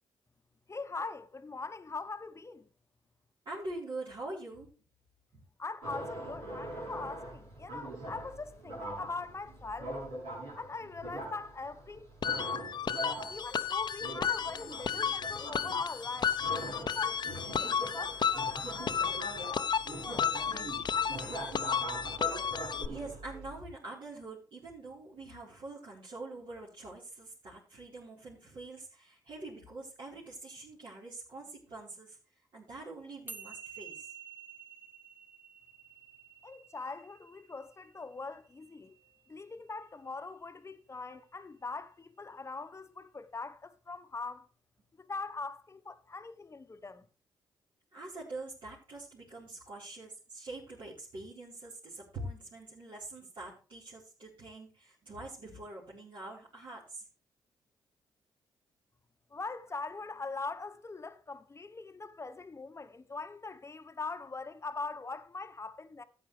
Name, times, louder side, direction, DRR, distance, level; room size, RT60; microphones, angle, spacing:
voice 1, 0.7-2.6 5.6-10.1 10.6-12.1 13.3-19.2 19.5-21.6 36.4-39.0 39.3-44.5 45.0-47.1 59.3-66.0, left 3 dB, 30° left, 1.0 m, -42 dB
voice 2, 3.4-4.7 5.3-5.4 22.8-32.2 32.5-34.1 47.9-57.1, right 2 dB, 55° right, 4.2 m, -45 dB
sound 1, 5.8-23.6, right 1 dB, 85° right, 7.3 m, -43 dB
sound 2, 12.2-22.9, left 7 dB, 50° left, 0.8 m, -33 dB
sound 3, 33.3-39.8, right 6 dB, 20° right, 1.6 m, -51 dB
13.5 x 8.9 x 3.3 m
hypercardioid pair, 45°, 10 cm